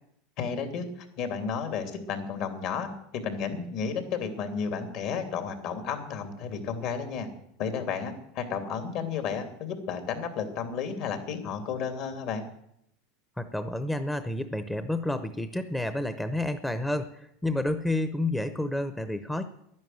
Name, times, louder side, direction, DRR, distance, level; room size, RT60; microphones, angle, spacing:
voice 1, 0.4-7.3 7.6-12.4, left 6 dB, 60° left, 7 dB, 2.8 m, -32 dB
voice 2, 13.4-19.5, left 1 dB, 5° left, 10 dB, 0.8 m, -30 dB
11.0 x 10.5 x 9.3 m, 0.76 s
supercardioid pair, 120°, 0 cm